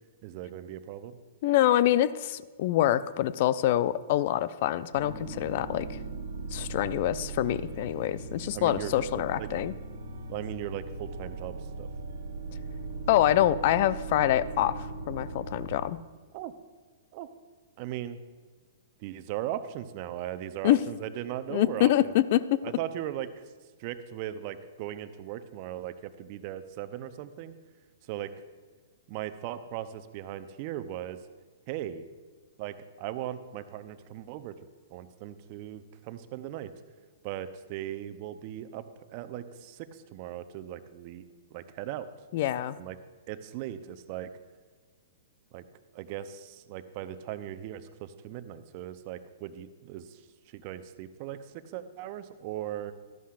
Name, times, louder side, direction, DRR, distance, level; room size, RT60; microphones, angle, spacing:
voice 1, 0.2-1.2 8.5-9.5 10.3-11.9 16.3-16.5 17.1-17.3 17.8-18.2 19.0-22.1 22.6-23.5 23.8-27.5 28.0-28.3 29.1-31.2 31.7-32.1 32.6-34.6 34.9-36.7 37.2-41.2 41.5-42.1 42.8-43.0 43.3-44.3 45.5-45.6 45.9-52.9, right 12 dB, 45° right, 11 dB, 0.7 m, -38 dB
voice 2, 1.4-6.0 6.5-9.7 13.1-16.0 20.6-20.8 21.5-22.6 42.3-42.8, left 13 dB, 50° left, 16 dB, 0.4 m, -25 dB
sound 1, 4.9-15.8, right 3 dB, 75° right, 1.5 m, -39 dB
13.5 x 11.0 x 2.5 m, 1.5 s
hypercardioid pair, 115°, 0 cm